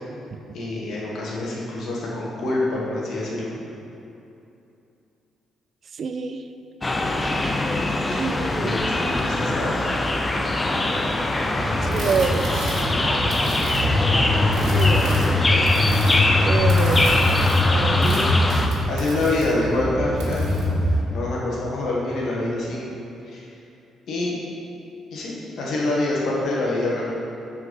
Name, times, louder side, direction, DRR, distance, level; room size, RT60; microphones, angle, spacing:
voice 1, 0.5-3.5 8.1-8.2 8.6-9.9 17.1-17.3 18.0-18.2 18.9-20.5 21.1-22.9 23.2-23.4 24.1-24.4 25.1-27.0, left 2 dB, 70° left, -4 dB, 1.7 m, -26 dB
voice 2, 5.9-6.4 8.2-8.8 11.8-12.5 14.7-15.6 16.4-17.1 17.7-18.1, right 5 dB, 55° right, 8 dB, 0.4 m, -27 dB
sound 1, 6.8-18.7, left 2 dB, 20° left, 0.6 m, -23 dB
sound 2, 11.6-21.0, left 1 dB, 75° right, 1.6 m, -23 dB
6.3 x 4.7 x 5.5 m, 2.8 s
cardioid pair, 90°, 0 cm